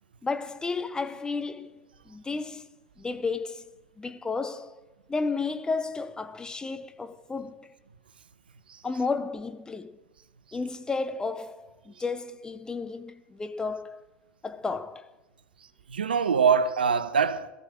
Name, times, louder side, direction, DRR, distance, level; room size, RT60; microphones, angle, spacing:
voice 1, 0.2-1.8 2.1-2.7 3.0-3.7 4.0-4.8 5.1-7.7 8.8-10.0 10.5-14.0 14.4-15.1, left 4 dB, 15° left, 0.8 m, -32 dB
voice 2, 15.6-17.5, right 6 dB, 80° right, 0.7 m, -25 dB
19.0 x 14.0 x 3.6 m
figure-of-eight pair, 80°, 5 cm